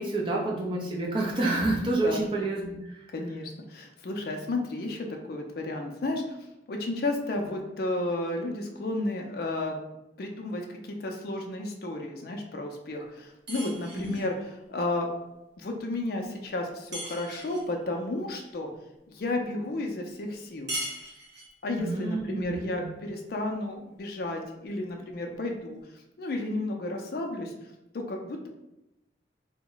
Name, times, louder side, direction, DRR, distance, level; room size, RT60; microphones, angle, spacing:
voice 1, 0.0-3.0 13.9-14.2 21.8-22.9, right 2 dB, 30° right, -3 dB, 0.6 m, -29 dB
voice 2, 3.1-9.8 10.2-15.1 15.6-18.7 19.1-20.7 21.6-25.8 26.2-27.5 27.9-28.5, left 2 dB, 55° left, 2 dB, 0.4 m, -32 dB
sound 1, 13.5-14.3 16.9-17.7 20.7-21.6, right 1 dB, 70° right, 1.0 m, -38 dB
2.9 x 2.1 x 3.8 m, 0.91 s
head